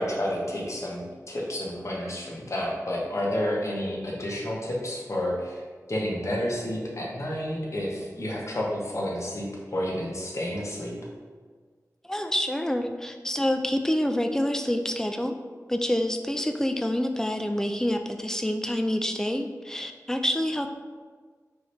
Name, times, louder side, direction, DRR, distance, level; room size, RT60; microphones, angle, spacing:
voice 1, 0.0-5.6 5.9-10.9, left 1 dB, 50° left, -3 dB, 1.0 m, -30 dB
voice 2, 12.0-15.3 15.7-20.7, left 1 dB, 10° left, 6 dB, 0.4 m, -27 dB
4.6 x 2.7 x 3.2 m, 1.5 s
cardioid pair, 45°, 6 cm